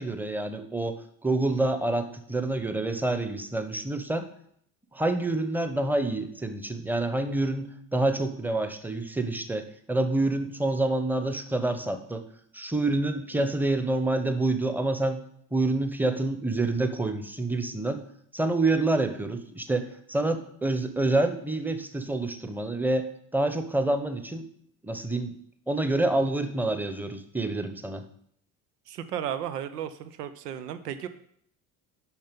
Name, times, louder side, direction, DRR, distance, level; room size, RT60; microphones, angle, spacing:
voice 1, 0.0-4.3 4.9-12.3 12.5-15.2 15.5-18.0 18.3-24.5 24.8-25.3 25.7-28.0, right 2 dB, 5° right, 9 dB, 0.9 m, -27 dB
voice 2, 28.9-31.1, right 9 dB, 85° right, 12 dB, 0.7 m, -34 dB
7.2 x 5.8 x 5.3 m, 0.68 s
hypercardioid pair, 60°, 46 cm